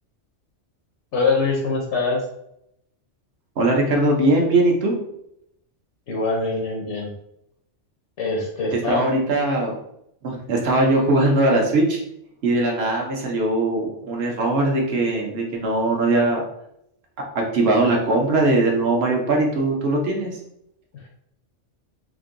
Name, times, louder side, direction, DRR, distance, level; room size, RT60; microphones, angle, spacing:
voice 1, 1.1-2.2 6.1-7.1 8.2-9.1, left 3 dB, 75° left, 0 dB, 1.0 m, -23 dB
voice 2, 3.6-5.0 8.7-9.7 10.2-12.0 12.4-16.4 17.3-20.3, right 2 dB, 60° right, 1 dB, 1.0 m, -20 dB
3.7 x 2.6 x 2.5 m, 0.75 s
omnidirectional pair, 1.2 m